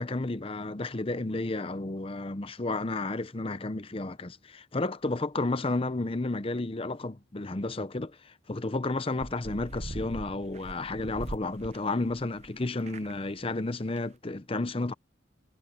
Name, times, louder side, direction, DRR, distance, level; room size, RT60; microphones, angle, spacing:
voice 1, 0.0-14.9, left 2 dB, 30° left, 0.7 m, -32 dB
sound 1, 9.2-12.5 12.8-13.3 13.6-13.7 13.9-14.0, right 2 dB, 35° right, 0.7 m, -41 dB
head